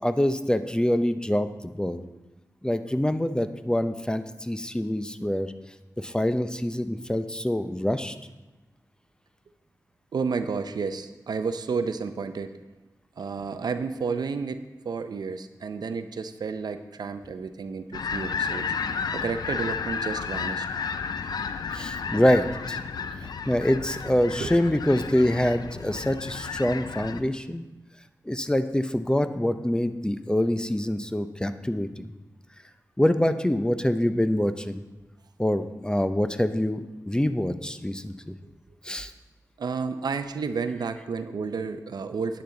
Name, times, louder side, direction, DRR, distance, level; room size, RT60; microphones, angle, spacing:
voice 1, 0.0-1.5 1.7-2.0 2.6-5.5 6.0-8.2 21.7-22.8 23.5-27.6 28.3-32.1 33.0-34.8 35.4-38.3 38.8-39.1, left 1 dB, 10° left, 10 dB, 0.6 m, -25 dB
voice 2, 10.1-12.5 13.2-18.7 19.1-20.7 24.4-24.6 39.6-42.4, right 5 dB, 80° right, 10 dB, 0.6 m, -31 dB
sound 1, 17.9-27.2, left 5 dB, 85° left, 0.5 m, -32 dB
10.0 x 9.7 x 3.9 m, 1.1 s
cardioid pair, 45°, 7 cm